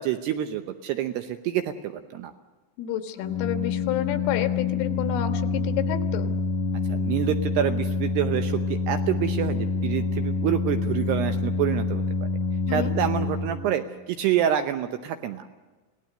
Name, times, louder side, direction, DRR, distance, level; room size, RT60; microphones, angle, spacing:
voice 1, 0.0-2.3 6.9-12.0 12.7-15.5, right 11 dB, 75° right, 8 dB, 2.5 m, -27 dB
voice 2, 2.8-6.3 12.7-13.0, left 10 dB, 85° left, 8 dB, 4.0 m, -30 dB
Organ, 3.2-14.0, left 3 dB, 65° left, 2.1 m, -27 dB
27.0 x 18.0 x 6.7 m, 1.3 s
omnidirectional pair, 5.6 m